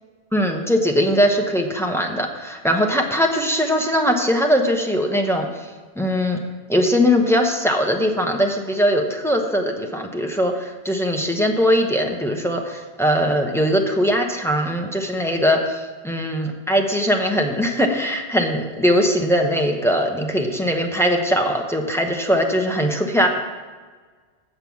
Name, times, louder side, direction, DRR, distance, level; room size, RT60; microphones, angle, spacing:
voice 1, 0.3-5.5 6.0-6.4 6.7-23.3, equal, 5° left, 2 dB, 0.8 m, -20 dB
7.7 x 6.6 x 7.1 m, 1.4 s
omnidirectional pair, 1.2 m